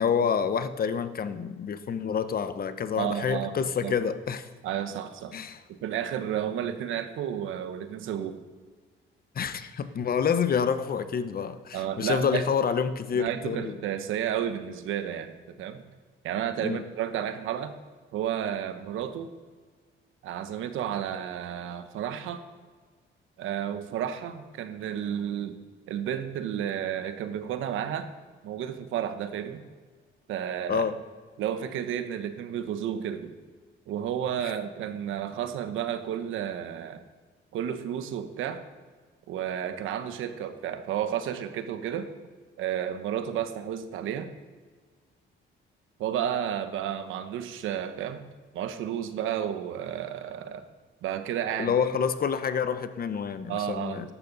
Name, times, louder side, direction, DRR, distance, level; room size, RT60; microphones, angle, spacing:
voice 1, 0.0-4.5 5.3-5.6 9.3-13.7 16.6-16.8 30.7-31.0 51.6-54.1, left 7 dB, 50° left, 11 dB, 0.9 m, -28 dB
voice 2, 3.0-3.9 4.6-5.4 5.7-8.4 11.7-12.4 13.1-15.8 16.2-17.7 18.1-19.3 20.2-22.4 23.4-25.6 25.9-28.1 28.4-29.6 30.3-30.8 31.4-33.3 33.9-37.0 37.5-38.6 39.3-42.1 42.6-44.3 46.0-48.2 48.5-50.7 51.0-51.7 53.5-54.1, right 9 dB, 85° right, 9 dB, 1.1 m, -32 dB
14.5 x 12.0 x 4.1 m, 1.5 s
cardioid pair, 90°, 20 cm